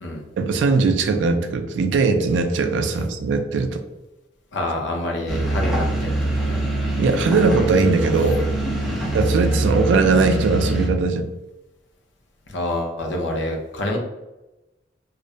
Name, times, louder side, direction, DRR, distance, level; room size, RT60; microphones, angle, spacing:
voice 1, 0.4-3.8 7.0-8.4 9.1-11.3, right 4 dB, 70° right, 7 dB, 0.3 m, -20 dB
voice 2, 4.5-6.6 8.8-9.1 12.5-14.0, left 1 dB, 80° left, 1 dB, 0.6 m, -27 dB
sound 1, 5.3-10.9, right 2 dB, ahead, 0.5 m, -24 dB
2.4 x 2.0 x 2.6 m, 1.0 s
head